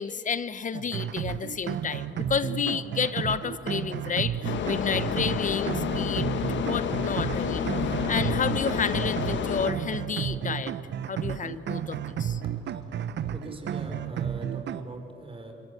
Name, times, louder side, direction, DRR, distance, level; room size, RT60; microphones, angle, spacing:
voice 1, 0.0-6.3 6.5-7.7 8.1-10.7 11.1-12.4, left 6 dB, 40° left, 15 dB, 1.1 m, -31 dB
sound 1, 0.7-14.9, right 9 dB, 60° right, 1.0 m, -32 dB
sound 2, 2.0-14.6, right 2 dB, 80° right, 7.0 m, -46 dB
sound 3, 4.4-9.7, left 7 dB, 65° left, 1.8 m, -29 dB
voice 2, 13.3-15.5, right 2 dB, 25° right, 4 dB, 5.5 m, -41 dB
26.5 x 23.0 x 8.3 m, 2.9 s
cardioid pair, 90°, 20 cm